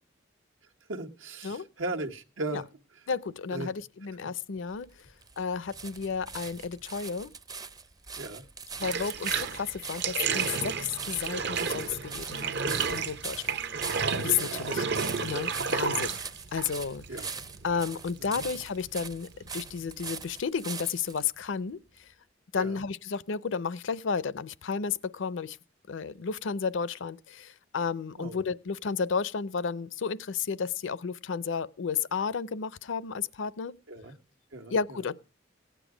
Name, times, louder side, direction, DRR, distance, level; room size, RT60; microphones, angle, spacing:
voice 1, 0.9-2.7 3.5-3.7 8.2-8.4 14.4-14.8 17.1-17.3 18.2-18.4 22.5-22.8 28.2-28.4 33.9-34.2 34.5-35.0, right 2 dB, 90° right, 1.3 m, -37 dB
voice 2, 3.1-4.9 5.4-7.3 8.8-14.8 15.2-16.2 16.5-17.0 17.6-21.8 22.5-25.6 25.9-33.7 34.7-35.1, left 6 dB, 70° left, 0.5 m, -32 dB
sound 1, 4.7-21.3 22.0-22.1, right 5 dB, 20° right, 0.5 m, -41 dB
Bathtub (filling or washing), 8.8-20.4, right 6 dB, 60° right, 0.8 m, -33 dB
16.0 x 9.2 x 4.9 m
head